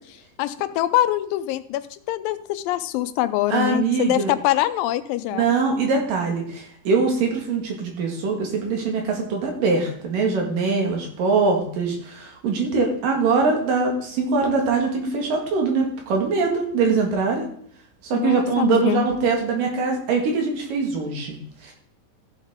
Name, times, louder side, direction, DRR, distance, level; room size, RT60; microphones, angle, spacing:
voice 1, 0.4-5.5 18.1-19.0, left 14 dB, 90° left, 12 dB, 2.3 m, -24 dB
voice 2, 3.5-4.3 5.3-17.5 18.0-21.4 21.6-21.7, right 4 dB, 75° right, 1 dB, 3.5 m, -22 dB
14.0 x 7.3 x 3.7 m, 0.62 s
omnidirectional pair, 4.0 m